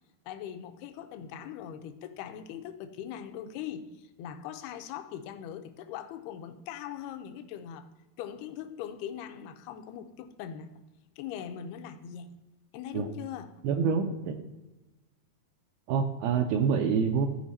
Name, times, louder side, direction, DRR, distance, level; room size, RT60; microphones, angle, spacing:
voice 1, 0.3-7.9 8.2-10.8 11.2-12.4 12.7-13.5, left 9 dB, 80° left, 7 dB, 2.5 m, -41 dB
voice 2, 13.6-14.4 15.9-17.3, right 6 dB, 85° right, 5 dB, 2.2 m, -26 dB
15.0 x 5.0 x 4.1 m, 1.1 s
omnidirectional pair, 4.9 m